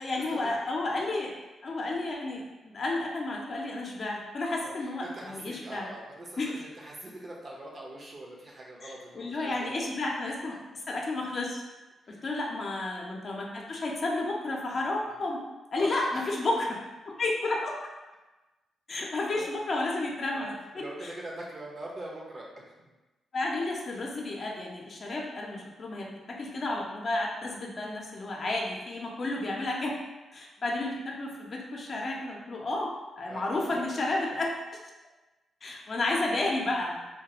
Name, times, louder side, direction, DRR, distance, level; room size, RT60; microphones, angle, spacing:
voice 1, 0.0-1.3 1.6-5.9 6.4-6.6 8.8-11.6 12.1-15.4 15.7-16.8 17.1-17.7 18.9-20.5 21.0-21.1 23.3-29.9 30.3-34.5 35.6-37.0, left 2 dB, 55° left, -2 dB, 0.5 m, -32 dB
voice 2, 4.6-9.9 12.0-12.2 12.5-12.6 15.1-15.2 15.8-16.4 18.9-19.0 19.3-19.5 20.3-20.5 20.8-22.5 22.8-22.9 33.3-33.4 33.7-33.8, right 1 dB, 50° right, -3 dB, 0.7 m, -43 dB
2.3 x 2.2 x 2.8 m, 1.1 s
supercardioid pair, 55°, 0 cm